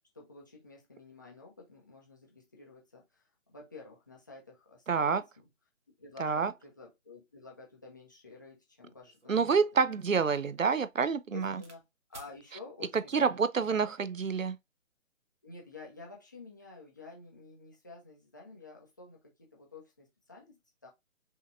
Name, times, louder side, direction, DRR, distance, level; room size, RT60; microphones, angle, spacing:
voice 1, 0.1-5.4 6.0-9.6 11.3-11.8 12.1-13.6 15.4-20.9, left 3 dB, 15° left, 0.6 m, -51 dB
voice 2, 4.9-5.2 6.2-6.5 9.3-11.6 12.9-14.6, right 5 dB, 75° right, 0.7 m, -28 dB
sound 1, 9.0-11.8 12.1-12.4 13.2-13.6, right 3 dB, 60° right, 1.5 m, -57 dB
5.6 x 2.9 x 2.5 m
figure-of-eight pair, 145°, 39 cm